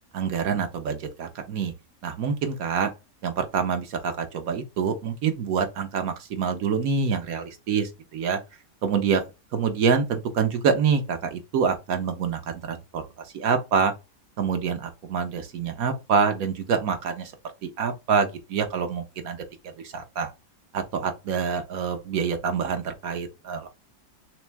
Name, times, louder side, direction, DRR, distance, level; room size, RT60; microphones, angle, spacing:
voice 1, 0.1-1.7 2.0-2.9 3.2-8.4 8.8-9.2 9.5-13.0 13.3-13.9 14.4-17.3 17.6-19.4 19.8-20.3 20.7-23.7, right 6 dB, 80° right, 1.3 m, -26 dB
3.6 x 3.1 x 3.4 m
omnidirectional pair, 1.5 m